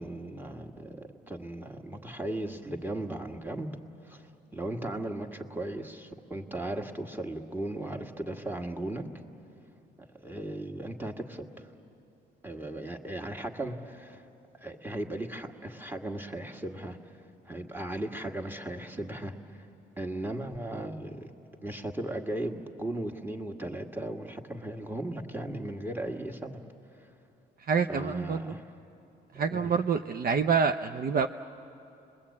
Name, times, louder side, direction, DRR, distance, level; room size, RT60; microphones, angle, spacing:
voice 1, 0.0-3.7 4.0-9.1 10.1-11.7 12.4-14.2 14.6-19.7 20.0-21.3 21.6-26.6 27.0-27.1 27.9-28.7 29.3-29.8, right 1 dB, 10° right, 3 dB, 1.8 m, -37 dB
voice 2, 27.7-28.6 29.4-31.3, right 6 dB, 50° right, 6 dB, 0.7 m, -27 dB
30.0 x 22.0 x 8.6 m, 2.8 s
cardioid pair, 90°, 20 cm